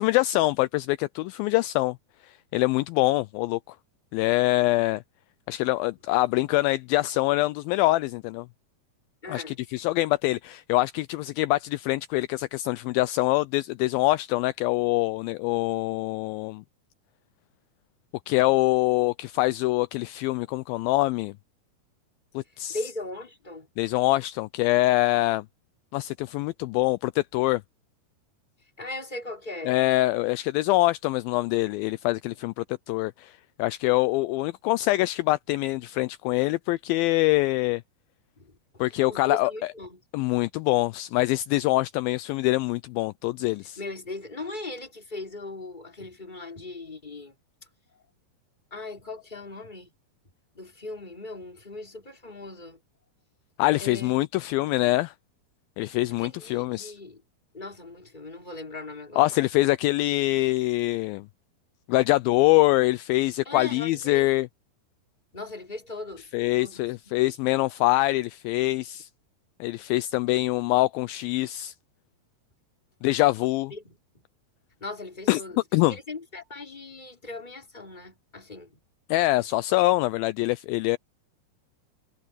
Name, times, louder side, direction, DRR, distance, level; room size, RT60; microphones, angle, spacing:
voice 1, 0.0-2.0 2.2-3.8 4.1-5.0 5.5-8.5 9.3-16.6 18.3-21.3 22.3-22.8 23.8-25.5 25.9-27.6 29.7-37.8 38.8-39.7 40.1-43.8 53.6-55.1 55.8-57.0 59.2-61.3 61.9-64.5 66.3-69.1 69.6-71.7 73.0-73.7 75.3-75.4 75.7-76.0 79.1-81.0, left 19 dB, 85° left, 2.1 m, -24 dB
voice 2, 9.2-9.6 22.7-23.7 28.8-29.8 38.4-38.5 38.9-40.0 43.8-47.3 48.7-49.9 50.5-52.8 53.8-54.2 56.2-57.2 57.5-59.3 63.5-64.3 65.3-66.3 66.6-67.3 73.7-74.0 74.8-75.6 75.9-78.7 79.4-79.5, left 2 dB, 10° left, 3.4 m, -39 dB
omnidirectional pair, 4.6 m